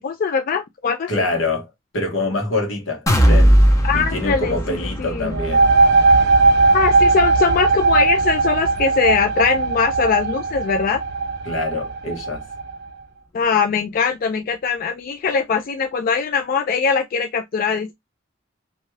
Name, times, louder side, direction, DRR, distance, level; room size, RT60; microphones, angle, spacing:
voice 1, 0.0-1.3 3.8-5.3 6.7-11.0 13.3-17.9, left 6 dB, 45° left, 0.3 m, -21 dB
voice 2, 1.1-1.7 1.9-3.6 3.9-5.6 11.4-12.4, left 2 dB, 85° left, 1.2 m, -25 dB
sound 1, 3.1-10.8 11.2-11.4 11.8-11.9, equal, 15° left, 0.6 m, -21 dB
sound 2, 5.3-12.7, right 3 dB, 55° right, 0.4 m, -18 dB
2.6 x 2.3 x 3.1 m
head